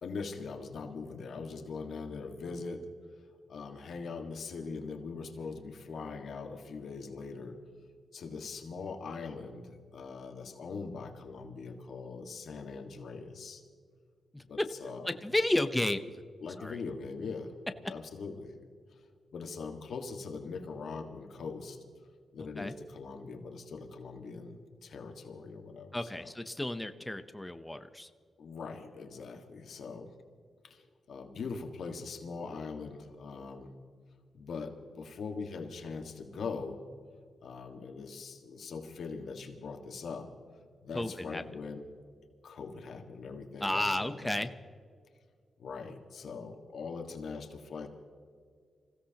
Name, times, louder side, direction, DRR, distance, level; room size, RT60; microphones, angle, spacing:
voice 1, 0.0-2.9 3.5-7.6 8.1-13.6 14.5-15.2 16.4-17.5 17.9-18.5 18.9-19.0 19.3-21.8 22.3-26.3 28.4-30.1 30.6-33.7 34.3-36.8 37.4-40.3 40.8-41.8 42.4-44.4 45.6-47.9, left 4 dB, 75° left, 4 dB, 1.7 m, -41 dB
voice 2, 15.1-16.2 16.6-16.8 22.6-22.7 25.9-28.1 40.9-41.4 43.6-44.5, left 1 dB, 10° left, 9 dB, 0.8 m, -32 dB
27.0 x 16.0 x 2.9 m, 2.1 s
cardioid pair, 95°, 0 cm